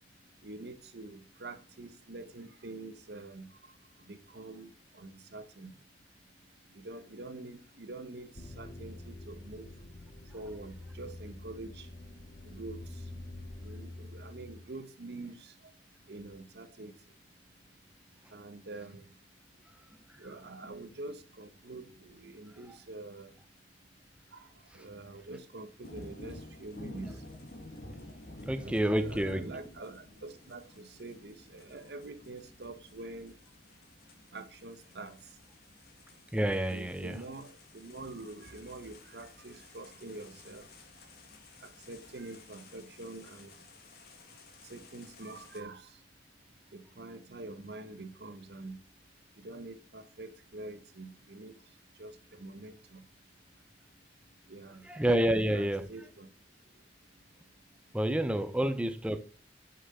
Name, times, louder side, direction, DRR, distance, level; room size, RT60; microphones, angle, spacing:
voice 1, 0.4-3.5 4.1-5.7 6.7-8.3 8.6-9.7 10.3-11.9 12.5-12.8 13.6-15.5 16.1-16.9 18.3-19.0 20.2-23.3 24.3-24.5 24.7-27.1 28.6-33.3 34.3-35.2 36.7-40.7 41.6-43.5 44.7-45.9 46.7-48.8 49.4-51.5 52.0-53.0 54.5-54.8 55.3-56.3, right 2 dB, 65° right, 0.9 m, -45 dB
sound 1, 8.4-14.6, left 2 dB, 40° left, 1.4 m, -46 dB
sound 2, 25.8-45.6, left 1 dB, 60° left, 1.7 m, -51 dB
voice 2, 28.5-29.5 36.3-37.2 54.8-55.9 57.9-59.2, right 1 dB, 5° right, 0.4 m, -29 dB
6.5 x 5.9 x 5.4 m
head